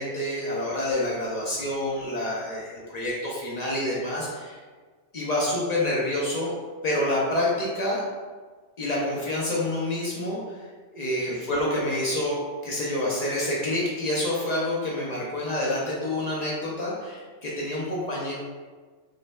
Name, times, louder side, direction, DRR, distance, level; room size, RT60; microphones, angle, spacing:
voice 1, 0.0-4.6 5.1-6.5 6.8-8.0 8.8-10.7 10.9-12.4 12.6-18.3, left 1 dB, 65° left, -5 dB, 0.4 m, -27 dB
2.5 x 2.1 x 3.0 m, 1.4 s
omnidirectional pair, 1.3 m